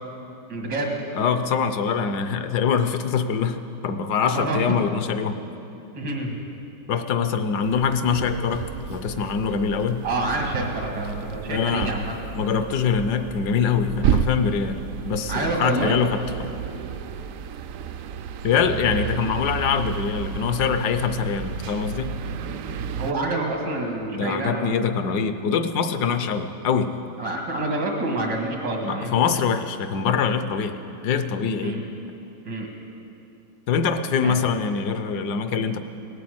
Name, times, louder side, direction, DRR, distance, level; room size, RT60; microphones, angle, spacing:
voice 1, 0.5-1.0 4.2-4.6 5.9-6.3 10.0-12.1 15.3-16.0 23.0-24.7 27.2-29.1 31.6-31.8 32.4-32.7 34.2-34.3, right 2 dB, 90° right, 1 dB, 2.6 m, -27 dB
voice 2, 1.1-5.4 6.9-10.0 11.5-11.9 12.4-14.8 15.0-16.5 18.4-22.1 24.1-26.9 28.8-31.8 33.7-35.8, left 6 dB, 70° left, 10 dB, 1.2 m, -24 dB
sound 1, 7.6-23.1, right 7 dB, 70° right, 0.8 m, -31 dB
17.5 x 8.4 x 7.8 m, 2.9 s
omnidirectional pair, 1.9 m